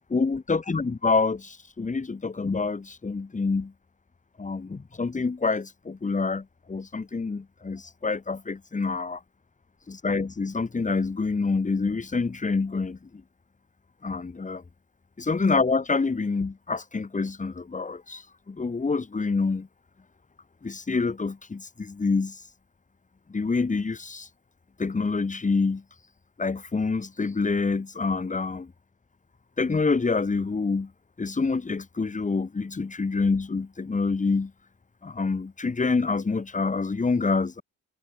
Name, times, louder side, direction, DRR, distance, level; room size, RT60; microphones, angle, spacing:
voice 1, 0.1-3.7 4.4-9.2 9.9-13.0 14.0-14.6 15.2-19.7 20.6-22.3 23.3-24.3 24.8-25.8 26.4-28.7 29.6-30.9 31.2-34.5 35.0-37.6, left 4 dB, 25° left, 3.0 m, -27 dB
cardioid pair, 90°, 30 cm